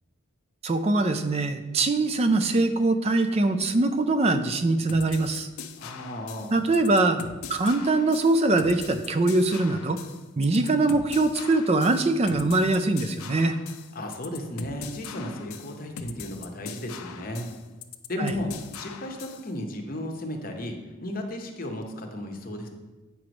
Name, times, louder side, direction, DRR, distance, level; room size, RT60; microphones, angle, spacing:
voice 1, 0.6-5.5 6.5-7.2 7.5-10.0 10.4-13.6 18.2-18.3, right 2 dB, 30° right, 9 dB, 0.3 m, -23 dB
sound 1, 4.9-19.5, left 6 dB, 85° left, 0.5 m, -41 dB
voice 2, 5.8-6.7 13.9-17.5 18.1-22.7, left 1 dB, 40° left, 3 dB, 0.7 m, -34 dB
8.5 x 3.1 x 5.1 m, 1.2 s
head